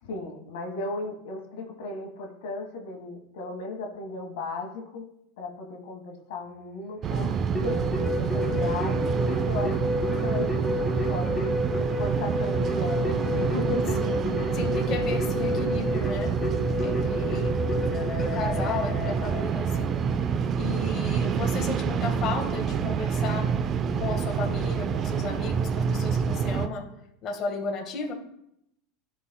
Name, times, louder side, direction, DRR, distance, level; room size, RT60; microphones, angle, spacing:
voice 1, 0.0-5.0 5.4-9.9 10.2-14.0 14.4-14.6, left 2 dB, 70° left, 2 dB, 1.4 m, -36 dB
sound 1, 7.0-26.7, right 6 dB, 40° right, 0.4 m, -27 dB
Keyboard (musical), 7.5-20.0, left 2 dB, 20° left, 2.4 m, -30 dB
voice 2, 14.0-16.4 16.8-17.6 18.2-20.3 20.6-23.5 23.9-26.9 27.2-28.1, left 4 dB, 40° left, 1 dB, 1.5 m, -34 dB
11.0 x 4.2 x 2.3 m, 0.77 s
hypercardioid pair, 105°, 0 cm